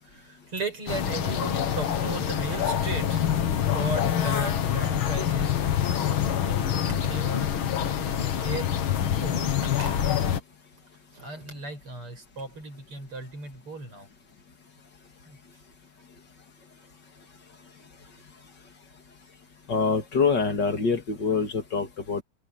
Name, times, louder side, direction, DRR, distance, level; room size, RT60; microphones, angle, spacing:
voice 1, 0.0-3.3 3.7-5.6 5.9-7.5 8.0-10.0 11.1-14.1 15.2-15.4, right 3 dB, 85° right, 8.3 m, -37 dB
sound 1, 0.9-10.4, left 9 dB, 70° left, 2.2 m, -26 dB
voice 2, 19.7-22.2, left 5 dB, 55° left, 3.0 m, -25 dB
omnidirectional pair, 2.4 m